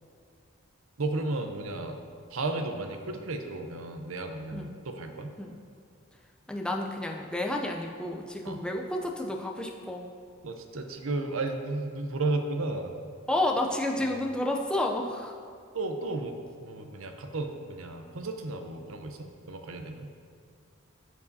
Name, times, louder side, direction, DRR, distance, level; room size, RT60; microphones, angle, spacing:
voice 1, 1.0-2.0 2.3-5.3 8.4-8.6 10.4-12.9 14.0-14.2 15.7-20.1, right 2 dB, 80° right, 5 dB, 0.7 m, -34 dB
voice 2, 6.5-10.1 13.3-15.3, left 1 dB, 5° left, 0 dB, 0.5 m, -30 dB
14.0 x 4.8 x 2.8 m, 2.3 s
head